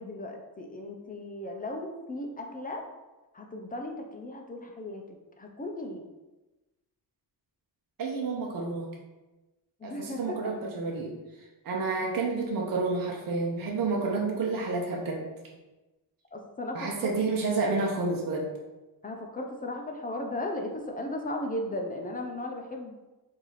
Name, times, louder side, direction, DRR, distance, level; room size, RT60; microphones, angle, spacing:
voice 1, 0.0-2.8 3.3-6.0 9.8-10.4 16.3-17.1 19.0-22.9, left 1 dB, 25° left, 2 dB, 0.6 m, -36 dB
voice 2, 8.0-8.9 9.8-11.1 11.6-15.2 16.7-18.5, right 3 dB, 60° right, -1 dB, 0.8 m, -29 dB
4.6 x 2.7 x 4.0 m, 1.1 s
wide cardioid pair, 135°, 37 cm